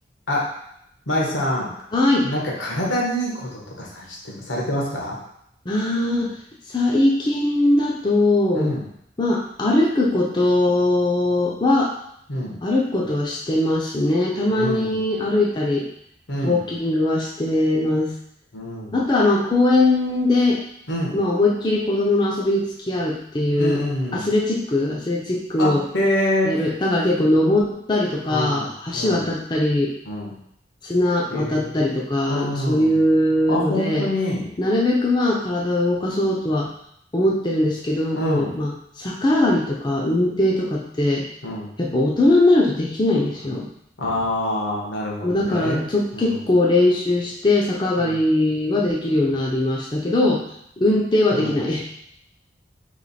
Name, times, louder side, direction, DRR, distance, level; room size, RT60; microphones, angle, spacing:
voice 1, 1.1-1.7 2.2-5.2 8.5-8.8 12.3-12.6 14.5-15.0 16.3-16.6 18.5-19.0 20.9-21.1 23.5-24.3 25.6-26.5 28.3-29.3 30.1-30.4 31.3-31.8 32.2-33.0 33.5-34.5 38.1-38.5 41.4-41.7 44.0-45.9 46.1-46.4 48.0-48.1 51.3-51.5, left 1 dB, 85° left, -2 dB, 1.1 m, -26 dB
voice 2, 1.9-2.3 5.7-6.3 6.7-8.7 9.2-11.9 12.6-15.9 16.4-18.1 18.9-20.6 21.1-23.8 24.1-25.8 26.4-29.9 30.8-34.1 34.6-36.7 37.1-41.3 41.8-43.7 45.2-50.4 50.8-51.9, left 1 dB, 25° left, -3 dB, 0.5 m, -20 dB
3.1 x 3.0 x 4.1 m, 0.73 s
head